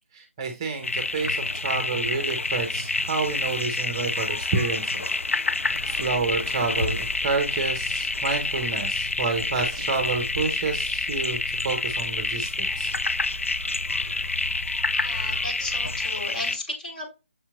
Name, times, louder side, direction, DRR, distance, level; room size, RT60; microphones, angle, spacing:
voice 1, 0.1-5.0 5.8-12.9, right 4 dB, 20° right, 5 dB, 0.7 m, -29 dB
sound 1, 0.8-16.6, left 3 dB, 80° left, 0.4 m, -28 dB
Purr, 5.6-16.0, equal, 10° left, 1.0 m, -41 dB
voice 2, 14.9-17.1, left 2 dB, 40° left, 0 dB, 1.9 m, -34 dB
6.7 x 2.9 x 2.3 m, 0.27 s
figure-of-eight pair, 155°, 7 cm